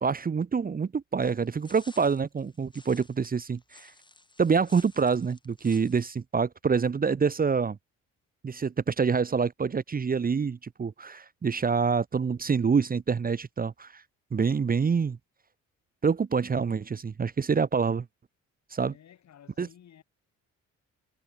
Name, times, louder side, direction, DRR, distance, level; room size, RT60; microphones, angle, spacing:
voice 1, 0.0-3.9 4.4-7.8 8.4-14.0 14.3-15.2 16.0-18.0 18.7-18.9 19.6-19.7, right 5 dB, 30° right, 1.0 m, -26 dB
sound 1, 1.2-6.2, left 2 dB, 15° left, 5.6 m, -55 dB
voice 2, 18.9-20.0, left 10 dB, 65° left, 7.0 m, -54 dB
cardioid pair, 90°, 30 cm